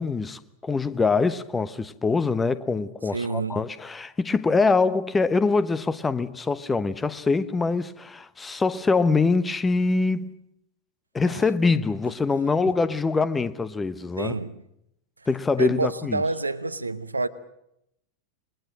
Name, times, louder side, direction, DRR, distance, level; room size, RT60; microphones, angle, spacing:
voice 1, 0.0-10.4 11.1-14.4 15.3-16.2, left 4 dB, 15° left, 1.0 m, -24 dB
voice 2, 3.1-3.7 11.2-11.5 14.2-14.6 15.6-17.3, right 3 dB, 80° right, 1.1 m, -28 dB
27.0 x 22.0 x 6.5 m
figure-of-eight pair, 90°, 0 cm